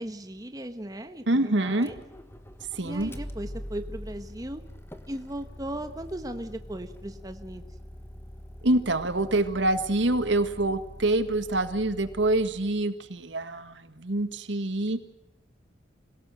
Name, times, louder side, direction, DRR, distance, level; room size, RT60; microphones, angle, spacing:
voice 1, 0.0-2.0 2.8-4.6 5.1-7.6, right 1 dB, 20° right, 7 dB, 1.2 m, -37 dB
voice 2, 1.3-1.9 2.7-3.1 8.6-15.0, right 2 dB, 80° right, 10 dB, 1.7 m, -26 dB
Motor vehicle (road), 1.7-12.9, equal, 15° left, 1.4 m, -44 dB
26.5 x 17.5 x 7.7 m, 0.89 s
head